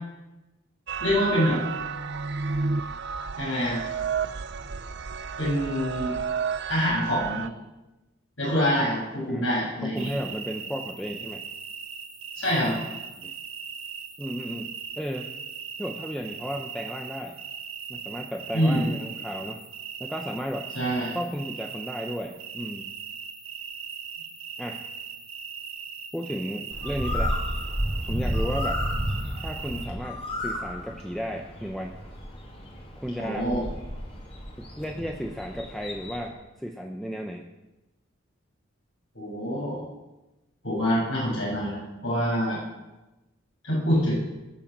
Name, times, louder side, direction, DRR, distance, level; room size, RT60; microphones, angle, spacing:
sound 1, 0.9-7.5, right 6 dB, 55° right, 0.6 m, -31 dB
voice 1, 1.0-1.6 3.4-3.8 5.4-6.1 6.7-7.5 8.4-10.1 12.4-12.8 18.5-18.9 20.7-21.1 33.2-33.6 39.1-39.9 40.6-42.6 43.6-44.1, equal, 75° left, -4 dB, 7.0 m, -25 dB
voice 2, 9.8-11.4 13.2-13.3 14.2-15.3 15.8-17.4 17.9-19.6 20.0-20.7 21.1-22.9 24.6-24.8 26.1-27.4 28.1-28.8 29.4-32.0 33.0-33.5 34.6-37.5, equal, ahead, 2 dB, 0.8 m, -34 dB
sound 2, 10.0-29.9, right 6 dB, 90° right, 2.0 m, -39 dB
Bird, 26.7-36.3, equal, 30° left, 2.9 m, -32 dB
20.0 x 7.0 x 7.5 m, 1.0 s
head